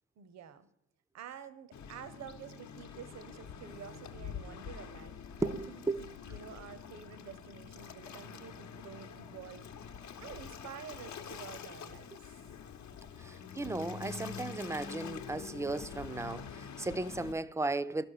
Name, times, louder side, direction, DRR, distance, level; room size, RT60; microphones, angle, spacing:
voice 1, 0.2-0.7 1.1-9.7 10.2-12.3, right 8 dB, 60° right, 0.8 m, -49 dB
Waves surf, 1.7-17.3, left 7 dB, 70° left, 0.9 m, -46 dB
voice 2, 5.4-6.0 13.2-18.1, right 2 dB, 10° right, 0.4 m, -35 dB
11.5 x 6.2 x 6.5 m
cardioid pair, 90°, 30 cm